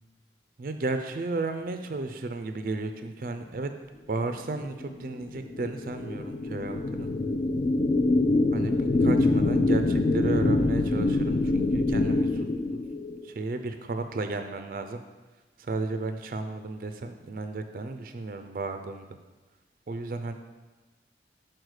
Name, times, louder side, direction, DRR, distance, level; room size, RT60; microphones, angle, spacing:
voice 1, 0.6-3.7 4.1-7.1 8.5-12.8 13.2-15.0 15.6-19.1 19.9-20.3, right 3 dB, 50° right, 7 dB, 0.4 m, -33 dB
sound 1, 4.5-13.3, left 2 dB, 35° left, 0.3 m, -25 dB
6.3 x 4.4 x 4.8 m, 1.2 s
head